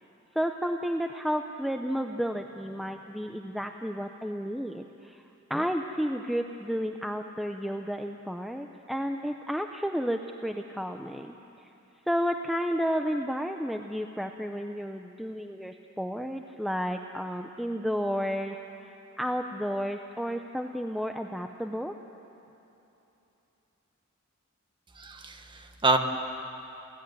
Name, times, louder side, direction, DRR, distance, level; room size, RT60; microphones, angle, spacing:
voice 1, 0.3-5.2 5.5-11.3 12.1-21.9, equal, ahead, 4 dB, 0.7 m, -32 dB
voice 2, 25.0-26.0, right 2 dB, 25° right, 5 dB, 1.5 m, -27 dB
28.5 x 16.0 x 9.5 m, 3.0 s
head